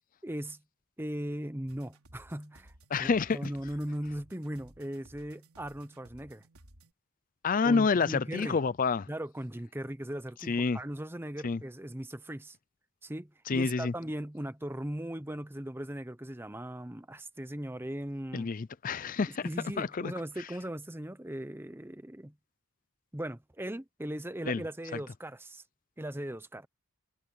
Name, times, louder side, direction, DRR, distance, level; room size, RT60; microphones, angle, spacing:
voice 1, 0.2-0.6 1.0-2.7 3.0-6.5 7.6-8.6 9.1-12.6 13.0-18.5 19.4-22.3 23.1-25.6 26.0-26.7, right 1 dB, 10° right, 0.8 m, -38 dB
sound 1, 1.7-6.9, right 1 dB, 80° right, 4.1 m, -58 dB
voice 2, 2.9-3.5 7.4-9.1 10.5-10.8 11.4-11.6 13.5-13.9 18.3-19.5 19.8-20.1 20.4-20.5 24.5-24.6, left 4 dB, 40° left, 0.4 m, -28 dB
head